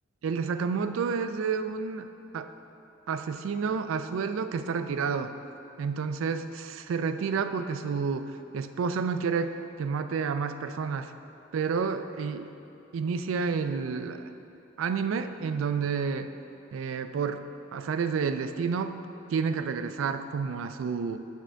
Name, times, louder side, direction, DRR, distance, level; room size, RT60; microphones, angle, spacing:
voice 1, 0.2-2.1 2.3-2.5 3.1-5.3 5.8-11.1 11.5-12.5 12.9-14.3 14.8-16.3 16.7-17.4 17.7-19.0 19.3-21.2, right 5 dB, 80° right, 10 dB, 0.3 m, -30 dB
7.5 x 3.3 x 6.3 m, 2.8 s
head